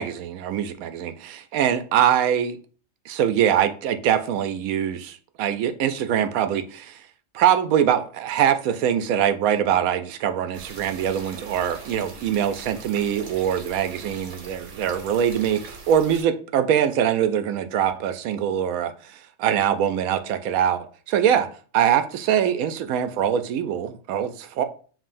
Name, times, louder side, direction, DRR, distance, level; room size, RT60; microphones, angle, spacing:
voice 1, 0.0-2.6 3.1-7.0 7.3-21.5 21.7-24.6, right 9 dB, 90° right, 1.0 m, -23 dB
sound 1, 10.5-16.2, right 3 dB, 65° right, 1.2 m, -42 dB
7.3 x 2.8 x 2.5 m
omnidirectional pair, 1.4 m